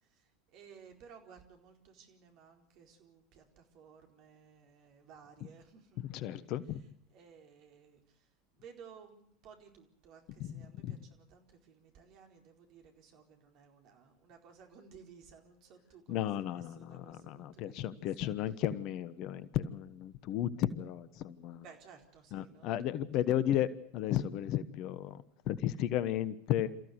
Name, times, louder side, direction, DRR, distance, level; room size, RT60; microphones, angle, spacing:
voice 1, 0.0-6.1 6.4-6.5 7.1-8.3 8.5-18.3 21.6-23.3, right 6 dB, 50° right, 3 dB, 4.4 m, -57 dB
voice 2, 6.0-6.8 10.4-11.0 16.1-21.6 22.3-26.7, left 11 dB, 50° left, 16 dB, 1.2 m, -34 dB
28.5 x 15.0 x 8.0 m, 0.69 s
figure-of-eight pair, 80°, 0 cm